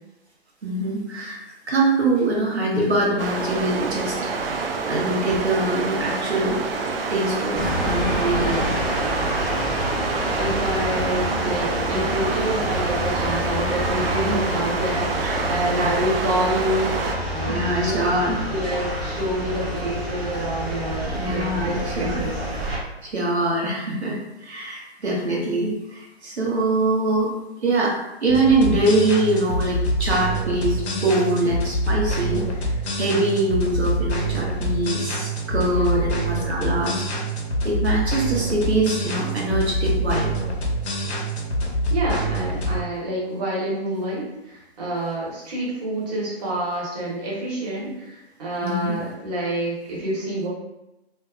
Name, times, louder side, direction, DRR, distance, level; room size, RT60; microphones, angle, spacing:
voice 1, 0.6-1.4 1.7-4.2 4.4-6.6 7.1-8.7 17.5-18.4 21.1-22.3 23.0-27.3 27.6-32.6 32.9-37.1 37.6-40.3 48.6-49.0, right 2 dB, 80° right, -3 dB, 1.0 m, -23 dB
sound 1, 3.2-17.1, right 4 dB, 60° right, 0.5 m, -27 dB
sound 2, 7.5-22.8, equal, 10° right, 0.5 m, -27 dB
voice 2, 10.3-18.1 18.5-22.3 35.7-36.3 41.9-50.5, right 1 dB, 40° right, -5 dB, 1.1 m, -28 dB
sound 3, 28.3-42.8, right 1 dB, 80° left, 0.7 m, -25 dB
2.7 x 2.3 x 2.4 m, 0.95 s
figure-of-eight pair, 130°, 32 cm